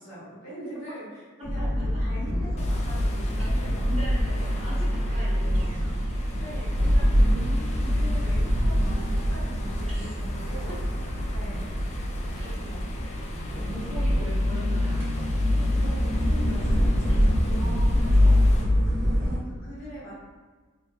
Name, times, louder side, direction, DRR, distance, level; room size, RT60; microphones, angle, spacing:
voice 1, 0.0-3.9 5.0-5.3 6.4-7.4 7.8-10.8 11.2-11.8 12.4-12.8 15.7-17.4 17.9-18.5 19.2-20.1, equal, 75° left, -9 dB, 1.4 m, -42 dB
sound 1, 1.4-19.4, equal, 60° right, 1.0 m, -24 dB
sound 2, 2.1-17.5, right 1 dB, 75° right, 0.4 m, -45 dB
sound 3, 2.6-18.6, left 2 dB, 35° left, 0.4 m, -41 dB
voice 2, 3.9-5.8 7.1-8.1 9.9-10.1 12.3-12.5 13.7-15.6 17.5-18.3, equal, 30° right, -8 dB, 1.0 m, -39 dB
3.5 x 2.1 x 2.7 m, 1.3 s
head